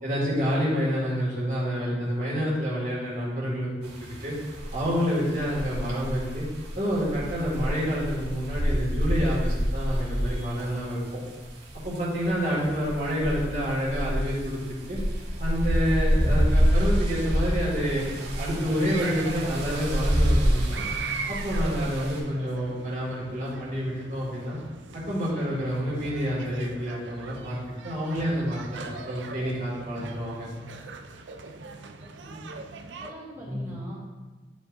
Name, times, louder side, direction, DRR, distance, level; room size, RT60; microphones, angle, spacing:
voice 1, 0.0-3.9 4.2-4.3 4.7-6.4 6.8-11.2 11.8-14.6 14.9-15.0 15.4-18.0 18.4-20.8 21.3-24.6 25.1-27.6 27.8-30.5 33.5-33.7, equal, 45° right, -7 dB, 2.2 m, -28 dB
sound 1, 3.8-22.2, equal, 65° right, 1.9 m, -28 dB
sound 2, 17.7-33.1, right 4 dB, 80° right, 0.5 m, -40 dB
voice 2, 32.8-33.9, equal, 15° right, -10 dB, 2.1 m, -42 dB
11.5 x 5.1 x 2.7 m, 1.3 s
head